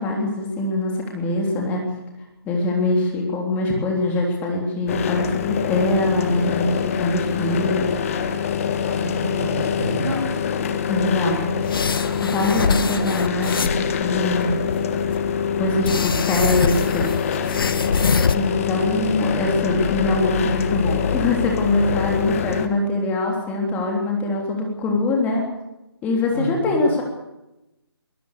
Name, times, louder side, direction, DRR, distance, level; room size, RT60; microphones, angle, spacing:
voice 1, 0.0-1.8 2.4-7.9 10.9-11.6 12.2-14.7 15.6-17.1 18.3-25.5 26.0-27.0, left 2 dB, 10° left, 0 dB, 3.4 m, -23 dB
sound 1, 4.9-22.7, left 7 dB, 35° left, 1.6 m, -25 dB
voice 2, 8.9-10.5 26.3-26.9, right 1 dB, 85° right, 3 dB, 7.4 m, -29 dB
sound 2, 11.6-13.9 14.4-15.2 15.8-18.3, left 5 dB, 60° left, 1.3 m, -24 dB
23.0 x 18.5 x 6.8 m, 0.95 s
figure-of-eight pair, 155°, 13 cm